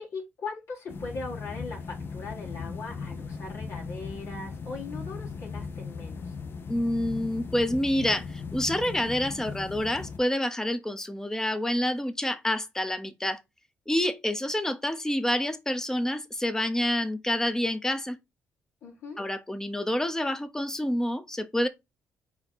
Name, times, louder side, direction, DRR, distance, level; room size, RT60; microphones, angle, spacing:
voice 1, 0.0-6.3 18.8-19.2, left 3 dB, 65° left, 1.8 m, -39 dB
sound 1, 0.9-10.2, left 4 dB, 50° left, 0.7 m, -38 dB
voice 2, 6.7-13.4 13.9-18.2 19.2-21.7, left 1 dB, 10° left, 0.8 m, -28 dB
4.2 x 3.0 x 3.9 m
cardioid pair, 75°, 5 cm